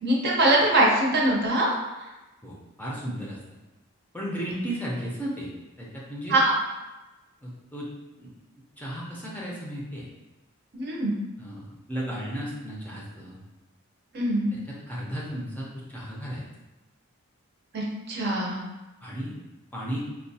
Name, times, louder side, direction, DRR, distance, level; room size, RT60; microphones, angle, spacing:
voice 1, 0.0-1.7 6.3-6.5 10.7-11.1 14.1-14.5 17.7-18.6, right 1 dB, 50° right, -3 dB, 0.7 m, -22 dB
voice 2, 2.4-3.4 4.1-5.5 5.8-6.4 7.4-7.9 8.2-8.3 8.8-10.0 11.4-13.4 14.9-16.4 19.0-19.3 19.7-20.0, equal, 10° left, -5 dB, 0.6 m, -34 dB
4.4 x 2.3 x 2.7 m, 1.1 s
head